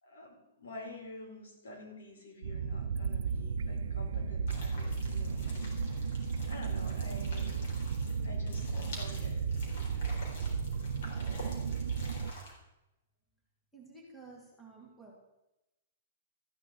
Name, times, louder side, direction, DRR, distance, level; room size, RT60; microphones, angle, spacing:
voice 1, 0.0-6.2 6.5-7.7 8.2-8.7 8.9-9.5 9.7-9.9 11.0-11.1, left 1 dB, 85° left, 1 dB, 4.8 m, -49 dB
sound 1, 2.4-12.3, right 5 dB, 85° right, 0.7 m, -34 dB
sound 2, 4.5-12.5, left 1 dB, 50° left, 3.9 m, -49 dB
voice 2, 13.7-15.2, right 3 dB, 5° left, -3 dB, 2.1 m, -52 dB
13.5 x 6.3 x 8.4 m, 0.93 s
hypercardioid pair, 180°, 0 cm